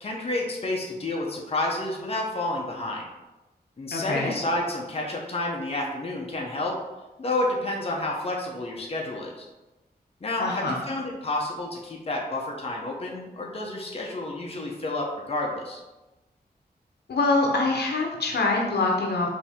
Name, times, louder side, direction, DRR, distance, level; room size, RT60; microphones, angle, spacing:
voice 1, 0.0-3.1 3.8-6.8 7.2-9.5 10.2-15.8, left 2 dB, 35° left, -1 dB, 0.7 m, -30 dB
voice 2, 3.9-4.3 10.4-10.8 17.1-19.3, left 3 dB, 80° left, 0 dB, 0.8 m, -24 dB
5.1 x 2.7 x 3.5 m, 1.1 s
wide cardioid pair, 115°, 17 cm